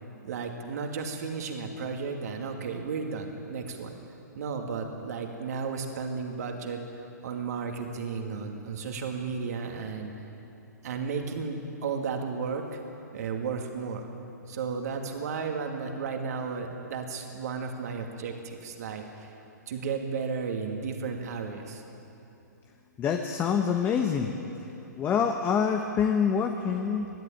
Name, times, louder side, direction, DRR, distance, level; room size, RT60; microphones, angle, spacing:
voice 1, 0.2-4.0 4.3-10.1 10.8-12.8 13.1-14.1 14.5-19.3 19.7-21.8, right 5 dB, 60° right, 3 dB, 2.6 m, -34 dB
voice 2, 23.0-24.3 25.0-27.1, left 7 dB, 20° left, 4 dB, 1.1 m, -26 dB
21.5 x 14.0 x 8.9 m, 2.9 s
hypercardioid pair, 125°, 10 cm